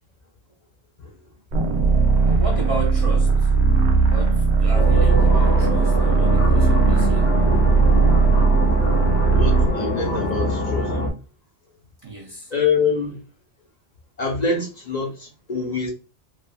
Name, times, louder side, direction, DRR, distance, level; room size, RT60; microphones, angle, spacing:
sound 1, 1.5-9.7, right 4 dB, 85° right, 0.9 m, -17 dB
voice 1, 2.2-3.5 4.1-7.3 12.0-12.5, right 2 dB, 40° right, 0.5 m, -33 dB
sound 2, 4.7-11.1, left 1 dB, 70° left, 1.0 m, -25 dB
voice 2, 9.3-11.0 12.5-13.2 14.2-15.9, left 4 dB, 45° left, 0.8 m, -25 dB
3.2 x 2.3 x 2.3 m
omnidirectional pair, 1.1 m